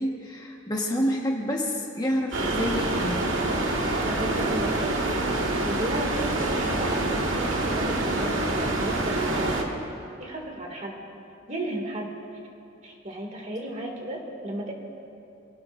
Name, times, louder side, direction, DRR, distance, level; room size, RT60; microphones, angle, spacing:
voice 1, 0.0-3.3, equal, 20° left, -2 dB, 1.4 m, -28 dB
sound 1, 2.3-9.6, right 2 dB, 85° right, 1.9 m, -26 dB
voice 2, 4.0-5.0 5.6-9.7 10.2-11.0 11.5-12.1 12.8-14.7, right 1 dB, 35° right, 0 dB, 2.3 m, -34 dB
27.0 x 18.5 x 2.6 m, 2.7 s
head